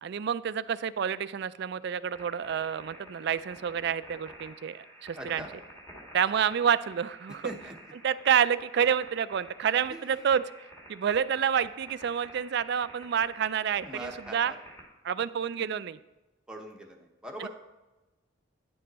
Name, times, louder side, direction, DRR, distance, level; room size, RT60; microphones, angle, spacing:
voice 1, 0.0-5.4 6.1-7.5 8.0-10.4 10.9-14.5 15.0-16.0 17.4-17.5, right 8 dB, 55° right, 15 dB, 0.3 m, -28 dB
sound 1, 2.1-14.8, right 1 dB, 10° left, 1.9 m, -50 dB
voice 2, 5.1-5.5 7.4-7.9 9.9-10.2 13.8-14.6 16.5-17.5, right 1 dB, 5° right, 1 dB, 1.0 m, -42 dB
10.0 x 6.7 x 4.1 m, 1.1 s
head